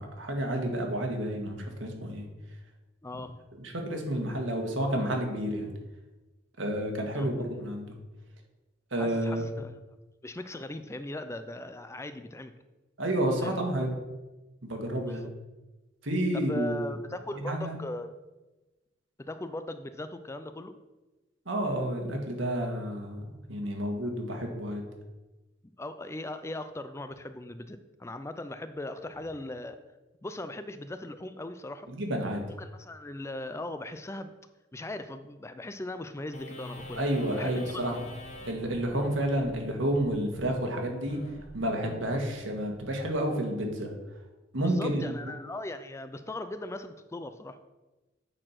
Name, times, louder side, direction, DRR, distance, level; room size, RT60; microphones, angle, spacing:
voice 1, 0.0-2.2 3.5-5.7 6.6-7.9 8.9-9.4 13.0-13.9 14.6-15.2 16.0-16.8 17.5-17.7 21.4-23.2 23.5-24.8 31.9-32.4 37.0-38.0 38.5-41.2 41.5-43.9 44.5-45.3, right 1 dB, 90° right, 2 dB, 1.7 m, -30 dB
voice 2, 3.0-3.4 7.2-7.5 9.0-9.8 10.2-12.5 13.4-13.6 15.0-15.3 16.3-18.1 19.2-20.7 25.8-29.8 30.2-31.9 32.6-34.3 34.7-37.0 37.4-37.9 38.9-39.1 44.6-47.6, left 2 dB, 15° left, 10 dB, 0.4 m, -39 dB
sound 1, 36.3-43.1, left 1 dB, 40° left, 1.0 m, -46 dB
8.9 x 4.3 x 5.9 m, 1.1 s
head